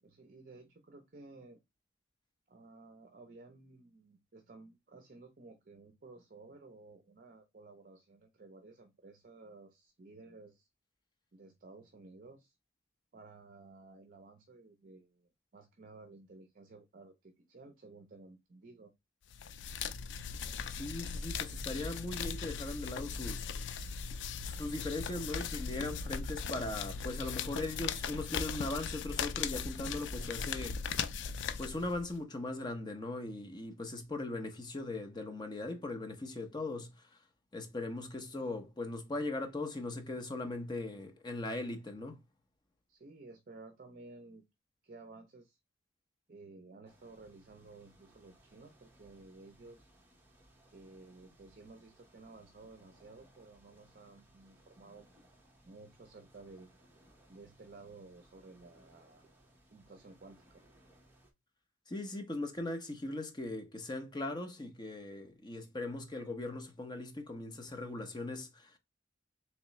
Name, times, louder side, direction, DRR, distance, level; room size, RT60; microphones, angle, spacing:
voice 1, 0.0-1.6 2.5-10.7 11.3-12.6 13.1-18.9 42.9-44.4 44.8-45.6 46.3-49.9 50.7-55.1 55.6-56.7 57.3-59.2 59.7-60.6, right 3 dB, 45° right, 0.6 m, -55 dB
sound 1, 19.3-32.2, left 6 dB, 65° left, 0.3 m, -38 dB
voice 2, 20.7-23.9 24.4-30.8 31.6-37.2 37.5-42.2 61.9-68.8, left 2 dB, 25° left, 0.7 m, -39 dB
sound 2, 46.8-61.3, right 1 dB, 10° right, 0.9 m, -65 dB
3.6 x 3.1 x 3.0 m
head